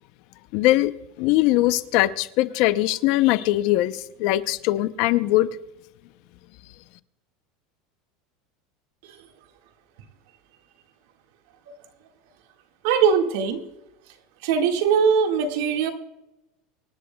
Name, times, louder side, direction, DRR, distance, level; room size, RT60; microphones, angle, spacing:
voice 1, 0.5-0.9 1.2-5.5, left 16 dB, 55° left, 14 dB, 0.6 m, -21 dB
voice 2, 12.8-13.6 14.4-15.9, right 6 dB, 70° right, 5 dB, 1.7 m, -21 dB
25.0 x 11.0 x 2.2 m, 0.93 s
supercardioid pair, 155°, 0 cm